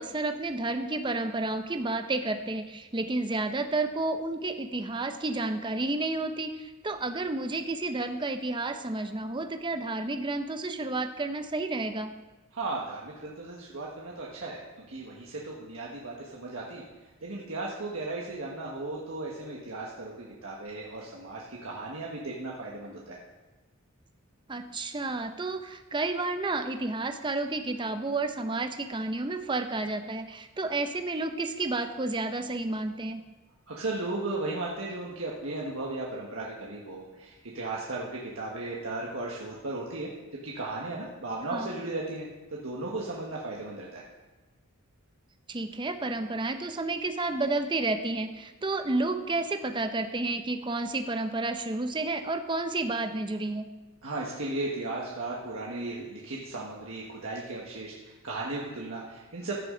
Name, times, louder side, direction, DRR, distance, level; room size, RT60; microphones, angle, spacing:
voice 1, 0.0-12.1 24.5-33.2 41.5-41.8 45.5-53.7, right 2 dB, 20° right, 7 dB, 0.6 m, -31 dB
voice 2, 12.5-14.6 14.9-16.8 17.2-23.2 33.7-40.1 40.4-44.0 54.0-59.7, right 2 dB, 70° right, -4 dB, 1.5 m, -36 dB
15.5 x 8.3 x 3.9 m, 1.2 s
head